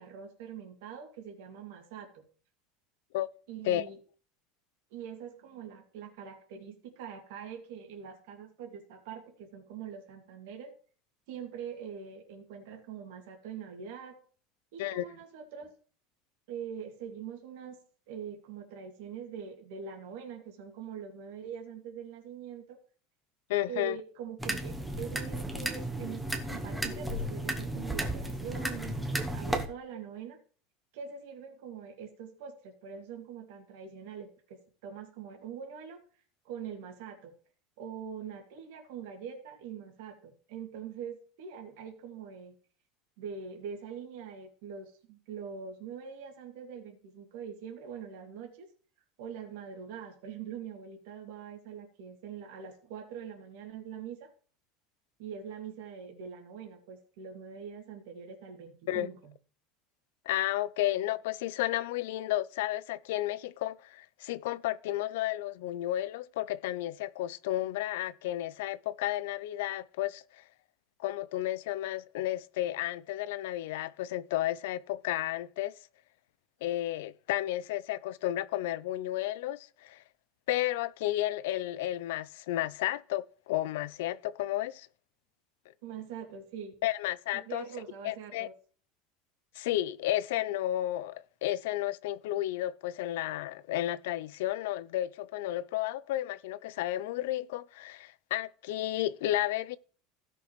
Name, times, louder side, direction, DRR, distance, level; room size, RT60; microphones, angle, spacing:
voice 1, 0.0-2.2 3.5-4.0 4.9-10.7 11.3-14.2 14.7-15.7 16.5-17.8 18.1-22.8 23.7-30.4 30.9-36.0 36.4-37.3 37.8-42.5 43.2-48.7 49.2-54.3 55.2-59.3 85.8-86.8 87.3-88.5, right 7 dB, 75° right, 2.4 m, -43 dB
voice 2, 23.5-24.0 58.9-59.1 60.3-70.4 71.0-75.7 76.6-80.0 80.5-84.9 86.8-87.7 88.0-88.5 89.6-99.8, left 14 dB, 85° left, 0.4 m, -32 dB
sound 1, 24.4-29.7, right 1 dB, 5° right, 0.9 m, -34 dB
16.0 x 5.9 x 3.2 m
cardioid pair, 165°, 0 cm